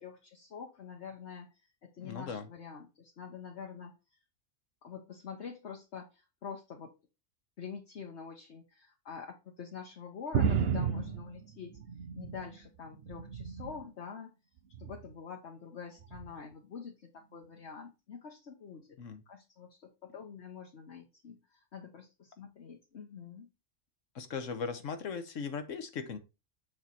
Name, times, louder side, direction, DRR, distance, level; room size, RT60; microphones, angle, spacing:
voice 1, 0.0-3.9 4.8-6.9 7.6-11.8 12.2-14.3 14.8-19.0 19.3-23.5, left 6 dB, 65° left, 1.4 m, -46 dB
voice 2, 2.0-2.5 19.0-19.2 24.1-26.2, left 5 dB, 90° left, 1.4 m, -38 dB
sound 1, 10.3-12.6 12.9-13.9 14.7-15.1 16.1-16.3, right 7 dB, 60° right, 0.9 m, -33 dB
7.2 x 4.5 x 4.1 m
omnidirectional pair, 1.3 m